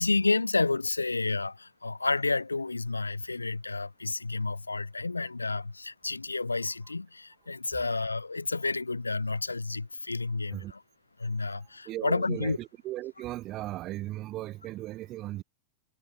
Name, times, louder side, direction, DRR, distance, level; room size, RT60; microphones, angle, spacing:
voice 1, 0.0-10.8 11.2-12.6, left 3 dB, 80° left, 3.9 m, -30 dB
voice 2, 11.8-15.4, right 16 dB, 35° right, 5.1 m, -37 dB
figure-of-eight pair, 90°, 0 cm